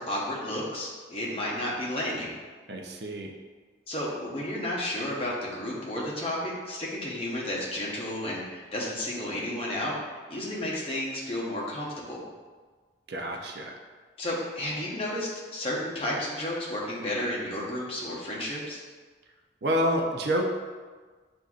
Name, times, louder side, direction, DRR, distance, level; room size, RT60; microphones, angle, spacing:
voice 1, 0.0-2.3 3.9-12.2 14.2-18.8, left 1 dB, 30° left, -5 dB, 0.9 m, -32 dB
voice 2, 2.7-3.3 13.1-13.8 19.6-20.5, equal, 60° right, 1 dB, 0.5 m, -28 dB
7.4 x 2.6 x 2.4 m, 1.4 s
head